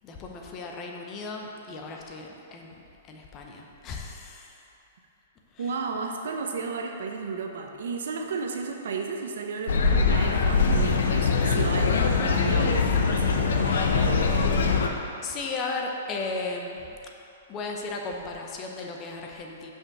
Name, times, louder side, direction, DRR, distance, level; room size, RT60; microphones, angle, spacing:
voice 1, 0.0-4.6 5.5-5.7 15.2-17.0 17.5-19.7, left 3 dB, 25° left, 1 dB, 0.9 m, -35 dB
voice 2, 5.6-13.7 14.0-14.8, right 4 dB, 75° right, 2 dB, 0.9 m, -33 dB
sound 1, 9.7-14.9, left 4 dB, 80° left, 0.8 m, -22 dB
6.4 x 5.2 x 6.1 m, 2.8 s
hypercardioid pair, 150°, 0 cm